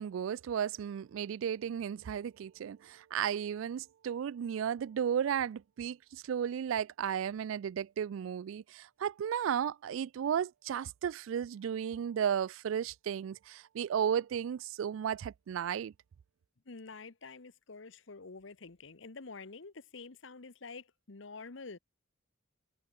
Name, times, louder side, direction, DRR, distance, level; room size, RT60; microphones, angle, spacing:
voice 1, 0.0-15.9, right 8 dB, 75° right, 0.3 m, -34 dB
voice 2, 16.7-21.8, left 4 dB, 65° left, 1.0 m, -48 dB
head